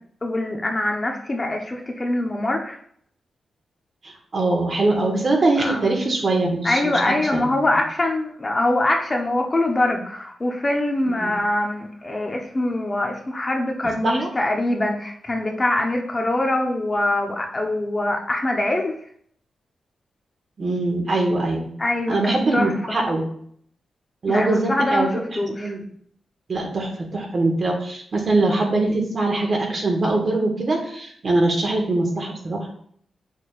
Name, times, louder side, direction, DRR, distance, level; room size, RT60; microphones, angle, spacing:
voice 1, 0.2-2.8 5.6-5.9 6.6-18.9 21.8-23.0 24.3-25.7, left 1 dB, 25° left, 2 dB, 0.9 m, -23 dB
voice 2, 4.0-7.6 11.2-11.3 14.0-14.3 20.6-21.7 22.1-23.3 24.2-25.8 26.5-32.7, right 2 dB, 50° right, 0 dB, 1.7 m, -22 dB
7.3 x 6.4 x 2.5 m, 0.64 s
cardioid pair, 100°, 0 cm